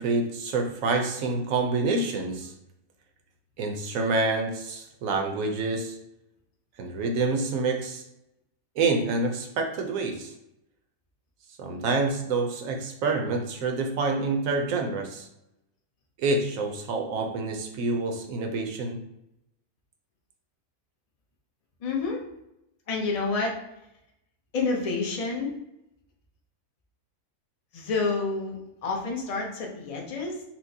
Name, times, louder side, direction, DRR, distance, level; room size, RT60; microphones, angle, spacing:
voice 1, 0.0-2.5 3.6-6.0 6.8-8.0 8.8-10.3 11.6-15.3 16.2-19.0, right 3 dB, 70° right, 4 dB, 0.9 m, -27 dB
voice 2, 21.8-22.2 22.9-23.6 24.5-25.6 27.7-30.4, left 4 dB, 60° left, -1 dB, 0.4 m, -29 dB
4.3 x 2.1 x 2.7 m, 0.85 s
omnidirectional pair, 1.6 m